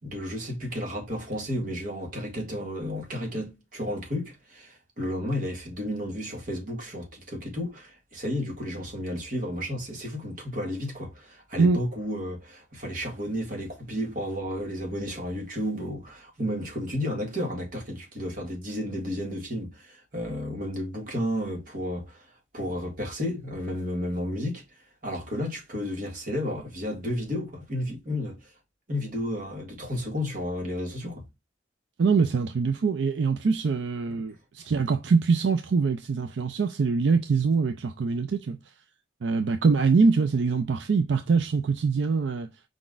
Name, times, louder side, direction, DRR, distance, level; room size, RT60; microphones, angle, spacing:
voice 1, 0.0-22.3 22.5-24.6 25.0-28.5 28.9-31.3 34.1-34.3, equal, 50° right, 1.8 m, -32 dB
voice 2, 32.0-38.6 39.2-42.5, right 4 dB, 75° right, 0.4 m, -23 dB
4.9 x 3.9 x 2.4 m
head